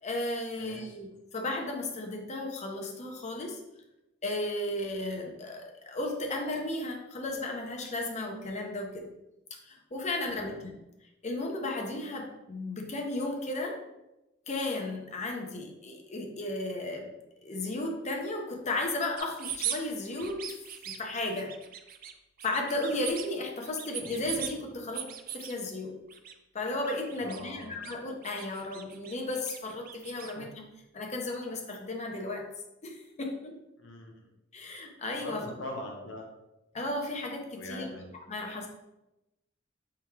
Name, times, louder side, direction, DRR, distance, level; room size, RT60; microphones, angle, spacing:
voice 1, 0.0-3.6 4.2-9.1 9.6-10.7 11.2-13.8 14.5-17.1 17.4-20.6 20.9-21.5 22.4-25.1 25.3-26.0 26.5-30.6 30.9-32.4 32.8-33.6 34.5-35.4 36.7-37.9 38.3-38.7, left 2 dB, 35° left, 2 dB, 0.7 m, -34 dB
voice 2, 0.6-1.0 10.3-10.6 27.2-27.8 30.4-30.5 33.8-34.1 35.2-36.3 37.5-38.1, left 1 dB, 75° left, 0 dB, 0.9 m, -42 dB
sound 1, 19.2-19.8 20.2-21.0 21.4-22.1 22.4-23.3 23.6-24.5 24.9-25.5 26.1-26.3 26.6-28.0 28.2-30.3, right 9 dB, 50° right, 0.4 m, -39 dB
4.4 x 3.6 x 3.1 m, 0.93 s
head